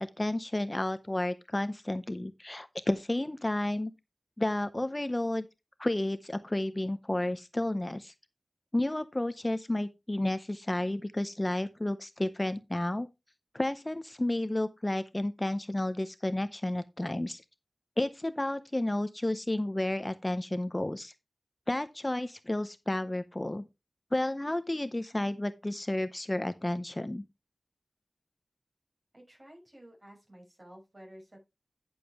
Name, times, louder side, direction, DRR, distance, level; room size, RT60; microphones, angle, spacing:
voice 1, 0.0-3.9 4.4-5.5 5.8-8.1 8.7-13.1 13.5-17.4 18.0-21.1 21.7-23.6 24.1-27.2, left 1 dB, 20° left, 0.6 m, -31 dB
voice 2, 29.1-31.4, equal, 35° right, 6.1 m, -52 dB
10.5 x 7.1 x 3.4 m
wide cardioid pair, 85°, 0 cm